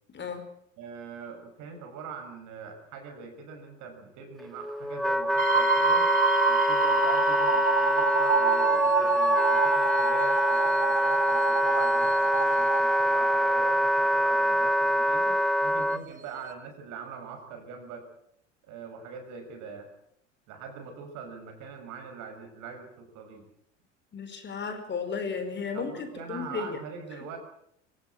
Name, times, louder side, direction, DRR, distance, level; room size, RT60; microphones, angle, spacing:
voice 1, 0.1-0.5 24.1-26.8, left 5 dB, 30° left, 7 dB, 5.0 m, -34 dB
voice 2, 0.8-6.1 6.5-18.1 18.6-19.9 20.5-23.5 25.7-27.4, right 5 dB, 50° right, 6 dB, 6.5 m, -42 dB
Wind instrument woodwind instrument, 4.4-16.0, equal, ahead, 0.9 m, -24 dB
sound 1, 5.4-15.3 16.1-16.2 16.5-16.6, right 6 dB, 20° right, 2.3 m, -29 dB
25.0 x 17.5 x 7.8 m, 0.72 s
figure-of-eight pair, 70°, 37 cm